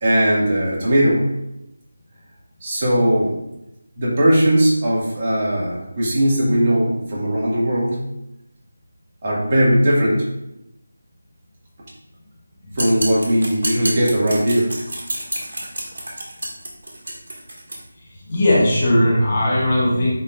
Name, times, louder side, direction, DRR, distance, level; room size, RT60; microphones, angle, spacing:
voice 1, 0.0-1.2 2.6-3.4 4.0-8.0 9.2-10.2 12.8-14.7, equal, 30° right, -6 dB, 2.1 m, -18 dB
sound 1, 12.7-17.8, right 1 dB, 65° right, 2.0 m, -29 dB
voice 2, 18.3-20.1, left 1 dB, 35° left, -5 dB, 1.5 m, -17 dB
9.5 x 4.1 x 2.5 m, 0.86 s
figure-of-eight pair, 165°, 0 cm